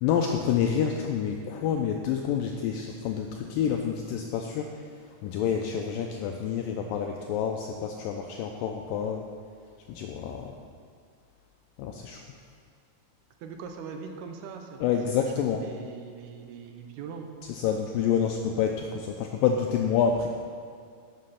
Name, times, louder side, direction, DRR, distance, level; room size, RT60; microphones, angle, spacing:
voice 1, 0.0-4.7 5.2-9.2 9.9-10.5 11.8-12.2 14.8-15.6 17.5-20.3, left 8 dB, 90° left, 3 dB, 2.0 m, -28 dB
voice 2, 13.4-17.4, right 6 dB, 85° right, 5 dB, 2.7 m, -41 dB
11.5 x 6.8 x 5.6 m, 2.2 s
omnidirectional pair, 4.5 m